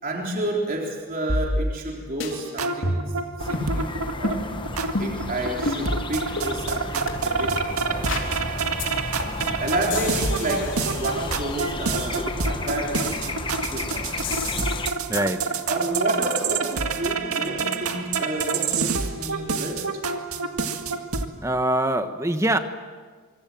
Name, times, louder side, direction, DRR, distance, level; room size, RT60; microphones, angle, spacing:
voice 1, 0.0-3.1 3.4-4.5 5.0-8.1 9.6-14.5 15.7-19.9, right 1 dB, 40° right, -1 dB, 3.8 m, -30 dB
sound 1, 1.3-1.9 2.2-2.3 2.8-3.2 3.5-3.7 4.2-4.4 4.9-5.2 5.7-5.8 6.4-6.5 7.1-7.2 7.6-7.7 8.1-8.3 8.8-8.9 9.2-9.5 9.9-11.7 14.2-14.8 15.2-15.3, left 1 dB, 60° left, 3.6 m, -29 dB
sound 2, 2.3-21.3, right 4 dB, 85° right, 1.9 m, -28 dB
sound 3, 3.4-14.9, left 2 dB, 20° left, 1.1 m, -33 dB
voice 2, 15.1-15.4 21.4-22.6, right 1 dB, 15° right, 8 dB, 1.2 m, -23 dB
25.5 x 24.5 x 7.7 m, 1.5 s
head